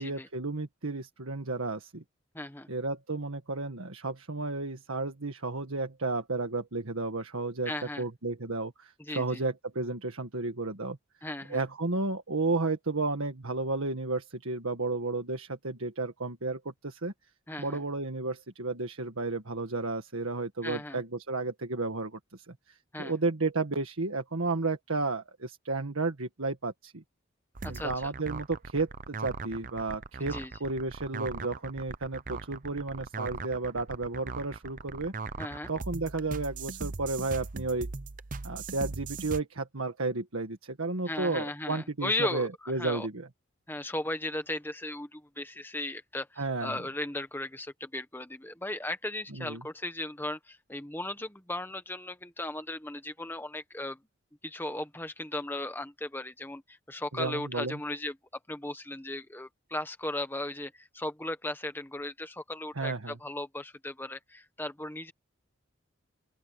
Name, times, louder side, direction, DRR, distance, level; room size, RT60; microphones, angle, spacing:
voice 1, 0.0-2.0 2.7-7.7 8.0-11.0 11.5-17.1 17.6-27.0 27.7-30.3 30.6-35.1 35.7-37.9 38.4-43.3 46.4-46.8 49.3-49.6 57.1-57.8 62.7-63.2, right 3 dB, 90° right, 1.7 m, -32 dB
voice 2, 2.3-2.7 7.6-8.0 9.0-9.4 11.2-11.6 17.5-17.8 20.6-21.0 22.9-23.1 27.6-28.1 30.2-30.5 35.4-35.7 41.0-43.1 43.7-54.0 54.4-58.2 58.5-65.1, left 1 dB, 10° left, 1.4 m, -36 dB
sound 1, 27.6-39.4, right 4 dB, 40° right, 0.7 m, -39 dB
open air
head